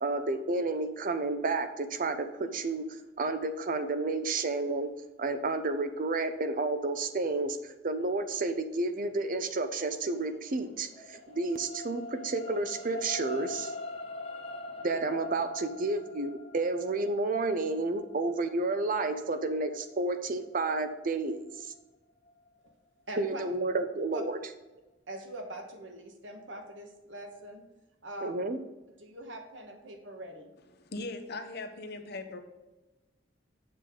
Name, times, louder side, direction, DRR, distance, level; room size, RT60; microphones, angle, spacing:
voice 1, 0.0-4.9 5.2-13.7 14.8-21.5 23.2-24.4 28.2-28.6, right 3 dB, 45° right, 0.7 m, -31 dB
sound 1, 10.1-22.7 23.2-23.3, left 2 dB, 35° left, 0.9 m, -44 dB
voice 2, 23.1-23.4 24.1-24.2 25.1-27.6 28.0-28.4 29.0-30.5, right 1 dB, 85° right, 1.3 m, -42 dB
voice 3, 30.8-32.4, left 2 dB, 60° left, 0.9 m, -39 dB
7.4 x 6.7 x 3.8 m
head